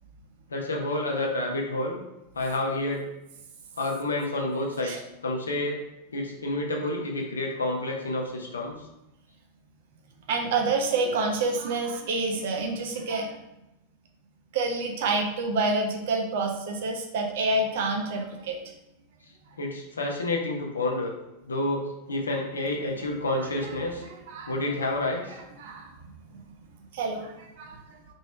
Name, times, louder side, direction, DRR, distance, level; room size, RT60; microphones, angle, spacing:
voice 1, 0.5-2.0 2.3-3.1 3.8-5.8 6.1-8.7 19.6-21.1 21.4-24.0 24.5-25.4, left 2 dB, 75° left, 0 dB, 0.7 m, -29 dB
voice 2, 10.3-13.4 14.5-18.6 24.3-24.5 25.6-25.9 26.3-26.4 26.9-27.8, right 3 dB, 55° right, 2 dB, 0.6 m, -28 dB
3.0 x 2.7 x 4.4 m, 0.92 s
figure-of-eight pair, 90°, 0 cm